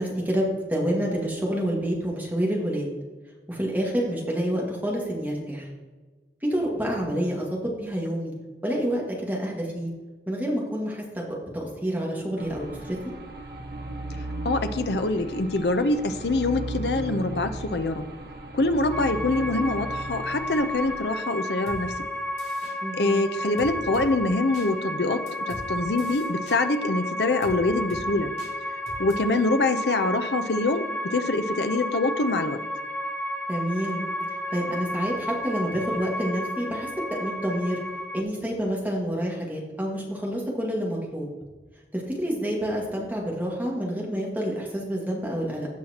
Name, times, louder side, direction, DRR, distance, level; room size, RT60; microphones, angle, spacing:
voice 1, 0.0-2.9 3.5-5.7 6.4-8.3 8.6-9.9 10.3-13.0 22.8-23.2 33.5-34.0 34.5-37.8 38.1-41.3 41.9-45.7, equal, 10° right, -3 dB, 1.9 m, -28 dB
sound 1, 12.4-21.0, right 2 dB, 60° right, 1.1 m, -36 dB
voice 2, 14.4-18.1 18.5-21.9 23.0-28.3 29.0-32.6, left 2 dB, 70° left, 8 dB, 0.7 m, -25 dB
sound 2, 18.9-38.2, left 1 dB, 10° left, 0.5 m, -32 dB
sound 3, 21.7-21.8 22.4-22.7 23.6-24.1 24.5-24.7 25.3-25.6 26.0-26.6 27.4-27.6 27.9-28.0 28.4-28.5 28.9-29.1, left 1 dB, 40° left, 2.7 m, -41 dB
16.0 x 5.7 x 2.9 m, 1.3 s
head